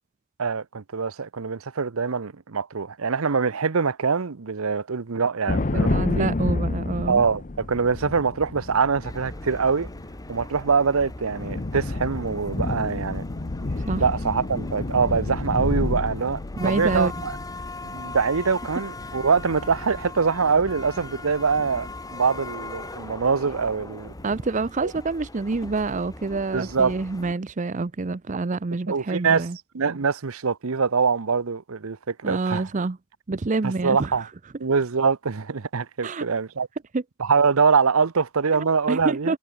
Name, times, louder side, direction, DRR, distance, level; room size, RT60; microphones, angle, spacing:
voice 1, 0.4-6.3 7.1-9.9 10.3-13.2 14.0-17.4 17.8-24.1 24.8-24.9 26.5-26.9 28.9-29.4 29.7-32.7 33.6-34.3 34.6-36.7 37.2-39.3, right 5 dB, 75° right, 0.8 m, -24 dB
sound 1, 5.5-23.1 23.5-24.2, left 2 dB, 35° left, 0.7 m, -31 dB
voice 2, 5.7-7.2 13.9-14.0 16.6-17.1 24.2-29.6 32.2-33.0 33.3-34.1 36.0-36.3 36.9-37.0 38.5-39.4, right 3 dB, 35° right, 0.5 m, -27 dB
sound 2, 9.0-27.3, left 2 dB, 15° left, 2.1 m, -40 dB
head